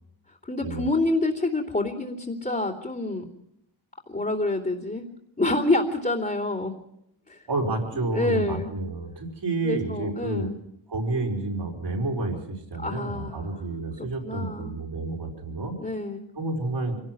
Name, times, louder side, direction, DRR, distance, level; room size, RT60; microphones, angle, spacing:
voice 1, 0.4-3.2 4.1-5.1 5.4-6.7 7.3-7.5 8.0-8.7 9.6-10.6 12.8-13.5 14.0-14.7 15.8-16.3, left 2 dB, 20° left, -7 dB, 2.9 m, -27 dB
voice 2, 7.5-10.5 10.9-15.8 16.4-17.0, right 2 dB, 60° right, 2 dB, 5.1 m, -30 dB
25.0 x 18.0 x 6.1 m, 0.78 s
wide cardioid pair, 105°, 45 cm